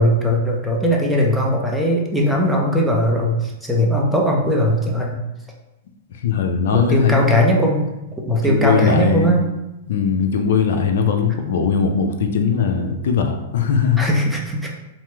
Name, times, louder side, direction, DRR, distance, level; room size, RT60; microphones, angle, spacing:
voice 1, 0.0-5.2 6.7-7.8 8.3-9.4 14.0-14.7, equal, 5° right, -2 dB, 0.6 m, -19 dB
voice 2, 6.1-7.5 8.3-9.4 9.9-14.0, left 6 dB, 70° left, 5 dB, 0.4 m, -20 dB
2.9 x 2.0 x 3.3 m, 0.97 s
hypercardioid pair, 120°, 0 cm